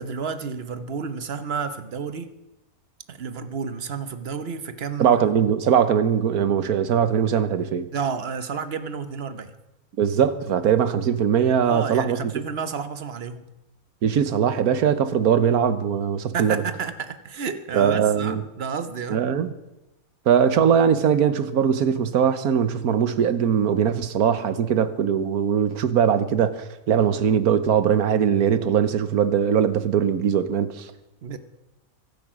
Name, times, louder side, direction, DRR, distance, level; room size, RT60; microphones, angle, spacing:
voice 1, 0.0-2.3 3.1-5.2 7.9-9.5 11.6-13.5 16.3-19.2 31.2-31.4, right 6 dB, 45° right, 1.1 m, -31 dB
voice 2, 5.0-7.9 10.0-12.3 14.0-16.6 17.7-18.4 19.1-19.5 20.3-30.9, right 8 dB, 80° right, 1.5 m, -21 dB
23.5 x 8.8 x 6.2 m
omnidirectional pair, 1.5 m